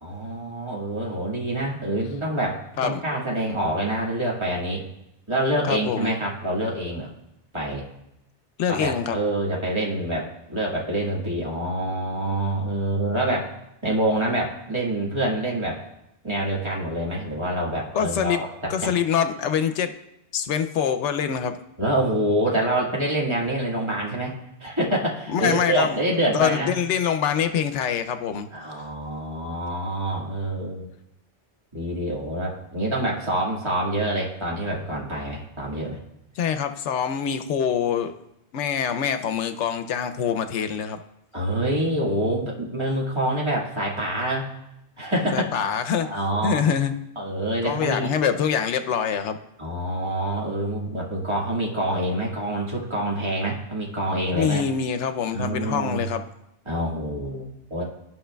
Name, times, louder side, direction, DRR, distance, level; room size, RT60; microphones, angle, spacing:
voice 1, 0.0-4.8 5.3-7.1 7.5-7.8 8.7-13.5 13.8-15.8 16.2-18.9 21.8-26.8 28.5-30.9 31.7-36.0 41.3-44.5 45.0-45.6 46.0-46.7 47.1-48.1 49.6-54.6 55.3-56.0 56.6-57.8, right 1 dB, 25° right, -5 dB, 1.7 m, -26 dB
voice 2, 5.7-6.1 8.6-9.2 17.9-18.4 18.7-19.9 20.3-21.6 25.3-26.0 26.3-28.5 36.4-38.1 38.5-41.0 45.3-46.1 46.4-46.9 47.6-49.4 54.3-56.2, left 7 dB, 90° left, 8 dB, 0.9 m, -24 dB
14.0 x 5.6 x 2.3 m, 0.82 s
omnidirectional pair, 1.2 m